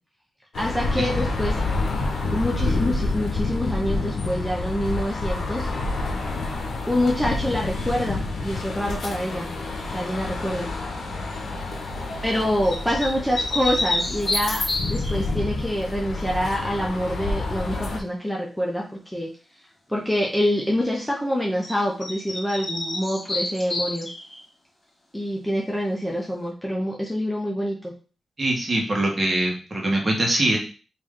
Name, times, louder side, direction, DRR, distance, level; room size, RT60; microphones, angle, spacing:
sound 1, 0.5-18.0, left 3 dB, 80° left, 0.7 m, -28 dB
voice 1, 0.5-1.6 2.2-5.7 6.9-9.5 9.9-10.7 12.2-14.6 14.9-19.3 19.9-24.1 25.1-27.9, equal, 5° left, -2 dB, 0.7 m, -26 dB
sound 2, 10.5-10.8 12.6-15.2 21.6-21.7 22.0-24.4, left 2 dB, 25° left, 1.8 m, -29 dB
voice 2, 28.4-30.6, right 1 dB, 30° right, -1 dB, 1.2 m, -23 dB
3.3 x 2.7 x 3.6 m, 0.35 s
wide cardioid pair, 100°, 0 cm